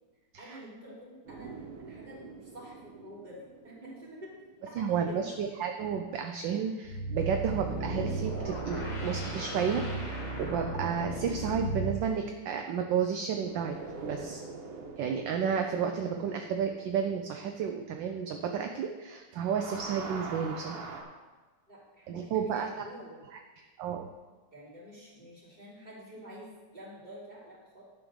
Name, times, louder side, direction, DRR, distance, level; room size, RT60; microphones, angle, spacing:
voice 1, 0.4-5.4 21.7-23.2 24.5-27.8, equal, 20° right, -7 dB, 3.1 m, -48 dB
sound 1, 1.2-5.7 7.5-12.9 13.3-19.0 19.3-21.0, right 4 dB, 85° right, 2.1 m, -46 dB
voice 2, 4.7-13.8 14.0-14.4 15.0-20.9 22.1-22.9 23.6-24.1, right 7 dB, 70° right, 4 dB, 1.2 m, -32 dB
sound 2, 6.8-12.1, right 2 dB, 55° left, 2.6 m, -35 dB
11.0 x 5.1 x 6.3 m, 1.3 s
omnidirectional pair, 2.4 m